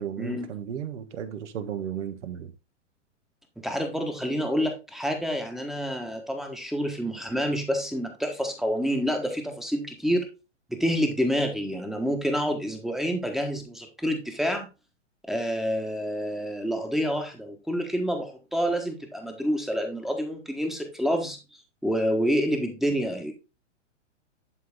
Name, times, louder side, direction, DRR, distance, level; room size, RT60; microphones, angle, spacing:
voice 1, 0.0-2.5, right 8 dB, 70° right, 1.5 m, -34 dB
voice 2, 3.6-10.3 10.7-14.7 15.3-21.4 21.8-23.3, equal, ahead, 1.4 m, -28 dB
11.0 x 3.9 x 3.7 m
hypercardioid pair, 125°, 37 cm